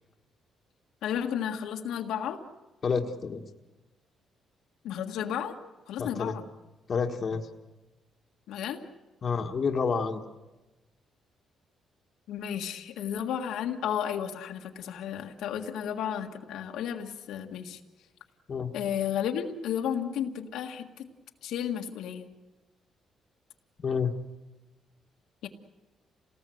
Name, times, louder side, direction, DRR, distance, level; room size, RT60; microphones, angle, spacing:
voice 1, 1.0-2.4 4.8-5.6 5.9-6.4 8.5-8.8 12.3-17.8 18.7-21.1 21.4-22.3 25.4-25.5, left 9 dB, 90° left, 3 dB, 1.7 m, -33 dB
voice 2, 2.8-3.4 6.0-6.3 6.9-7.5 9.2-10.2 18.5-18.7 23.8-24.1, left 5 dB, 45° left, 4 dB, 1.6 m, -29 dB
28.0 x 18.5 x 7.9 m, 1.1 s
cardioid pair, 115°, 0 cm